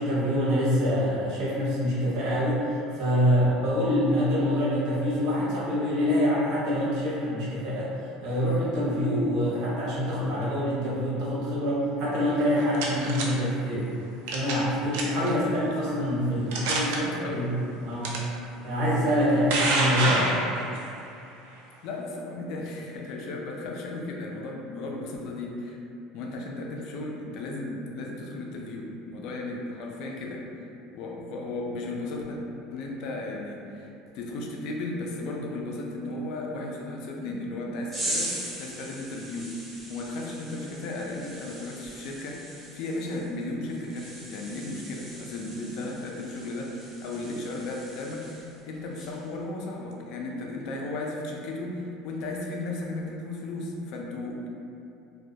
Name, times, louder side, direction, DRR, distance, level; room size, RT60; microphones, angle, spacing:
voice 1, 0.0-2.6 2.9-7.9 8.2-13.9 14.3-16.9 17.3-17.5 17.9-18.1 18.6-20.2, equal, 55° right, -7 dB, 0.7 m, -25 dB
sound 1, 12.4-13.3 14.3-14.7 14.9-15.3 15.9-16.0 16.5-17.0 18.0-18.2 19.1-20.9, right 2 dB, 90° right, 0.4 m, -26 dB
voice 2, 15.3-15.6 16.6-17.6 20.0-20.6 21.8-25.8 26.1-30.5 30.9-32.4 32.7-54.5, left 2 dB, 60° left, 0 dB, 0.3 m, -35 dB
sound 2, 37.9-48.6 48.9-49.3, right 1 dB, 15° right, 0.6 m, -40 dB
2.2 x 2.1 x 2.6 m, 2.6 s
cardioid pair, 150°, 0 cm